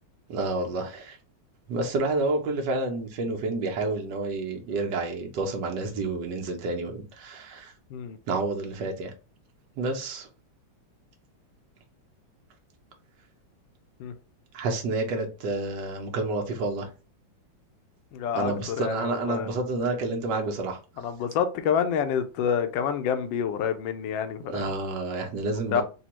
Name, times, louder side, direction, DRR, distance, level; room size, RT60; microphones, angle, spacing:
voice 1, 0.3-1.2 1.7-7.7 8.3-9.1 9.8-10.3 14.5-16.9 18.3-20.8 24.4-25.8, right 2 dB, 65° right, 1.4 m, -29 dB
voice 2, 18.1-19.5 21.0-24.7 25.7-25.8, left 7 dB, 75° left, 1.2 m, -28 dB
4.2 x 2.3 x 2.9 m
omnidirectional pair, 2.1 m